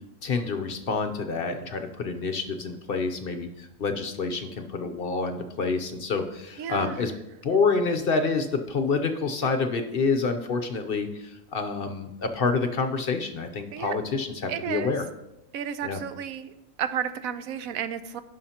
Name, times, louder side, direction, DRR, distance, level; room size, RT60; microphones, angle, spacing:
voice 1, 0.2-7.1 7.4-15.1 15.8-16.0, left 4 dB, 50° left, 7 dB, 0.8 m, -27 dB
voice 2, 6.6-6.9 13.7-14.0 14.5-14.9 15.5-16.5 16.8-18.2, right 8 dB, 85° right, 11 dB, 1.1 m, -32 dB
16.5 x 5.7 x 2.9 m, 0.92 s
omnidirectional pair, 1.4 m